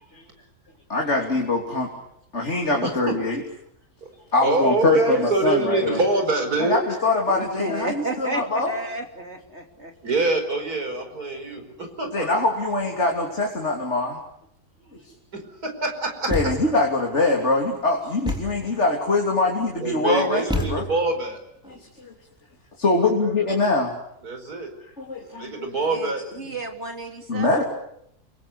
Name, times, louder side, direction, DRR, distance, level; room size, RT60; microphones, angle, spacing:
voice 1, 0.9-1.9 2.3-3.4 4.3-6.0 6.6-8.7 12.1-14.2 16.3-20.8 21.6-22.1 22.8-24.0 25.0-25.7 27.3-27.6, left 2 dB, 45° left, 0 dB, 3.4 m, -23 dB
voice 2, 2.8-3.2 4.4-6.8 10.0-12.3 15.3-16.5 19.8-21.4 21.6-21.8 24.2-24.7 25.2-26.6, right 2 dB, 75° right, 6 dB, 5.4 m, -25 dB
voice 3, 7.3-9.9 25.9-27.6, right 2 dB, 45° right, 4 dB, 3.6 m, -32 dB
Thump thud, 16.3-16.9 18.2-18.7 20.5-21.2, equal, 5° right, 3.3 m, -28 dB
30.0 x 23.0 x 8.2 m, 0.75 s
omnidirectional pair, 1.6 m